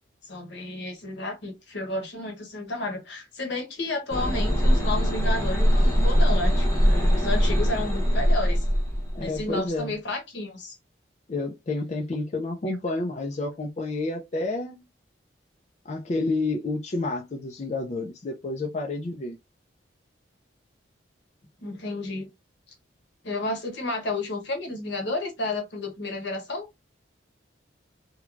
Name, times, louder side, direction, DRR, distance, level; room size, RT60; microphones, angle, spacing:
voice 1, 0.2-8.7 9.2-10.7 21.6-22.3 23.2-26.7, left 2 dB, 70° left, 1.0 m, -32 dB
sound 1, 4.1-9.4, equal, 15° left, 0.7 m, -22 dB
voice 2, 9.1-9.9 11.3-14.8 15.9-19.4, left 2 dB, 35° left, 0.4 m, -29 dB
3.1 x 2.2 x 2.4 m
head